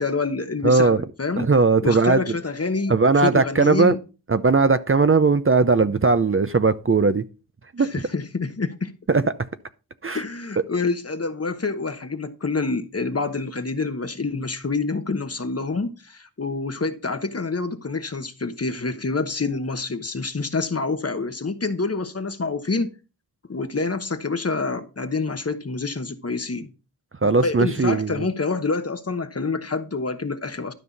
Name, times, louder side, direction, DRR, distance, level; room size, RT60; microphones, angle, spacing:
voice 1, 0.0-1.5 1.8-4.0 7.8-9.0 10.1-22.9 23.5-26.7 27.2-30.7, left 3 dB, 40° left, 1.1 m, -27 dB
voice 2, 0.6-1.0 1.4-2.2 2.9-3.9 4.3-7.2 7.7-7.9 9.1-9.2 10.0-10.2 27.2-28.3, right 4 dB, 35° right, 0.6 m, -18 dB
12.5 x 5.6 x 4.0 m
wide cardioid pair, 60°, 37 cm